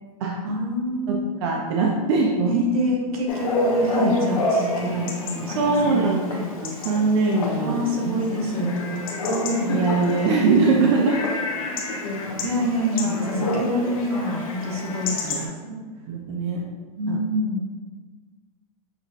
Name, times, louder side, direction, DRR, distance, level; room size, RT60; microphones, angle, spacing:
voice 1, 0.4-1.5 2.5-6.5 7.6-8.7 9.3-9.8 12.4-15.8 17.0-17.7, left 1 dB, 65° right, -1 dB, 1.1 m, -26 dB
voice 2, 1.1-2.6 5.5-8.3 8.6-9.1 9.7-11.2 13.0-13.6 15.3-15.5 16.1-16.6 17.1-17.2, right 3 dB, 45° right, -1 dB, 0.4 m, -22 dB
Chatter / Bark / Livestock farm animals working animals, 3.3-15.5, left 1 dB, 60° left, 0.9 m, -29 dB
5.7 x 2.8 x 2.4 m, 1.4 s
supercardioid pair, 165°, 20 cm